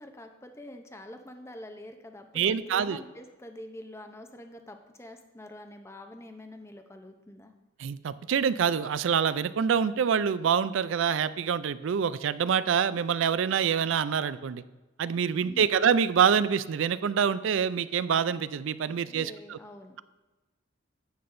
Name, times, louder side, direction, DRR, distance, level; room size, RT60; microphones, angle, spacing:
voice 1, 0.0-7.5 15.4-15.8 19.0-20.0, left 1 dB, 15° left, 5 dB, 0.6 m, -46 dB
voice 2, 2.3-3.0 7.8-14.6 15.0-19.6, right 7 dB, 70° right, 16 dB, 0.4 m, -26 dB
10.5 x 8.7 x 2.6 m, 1.2 s
head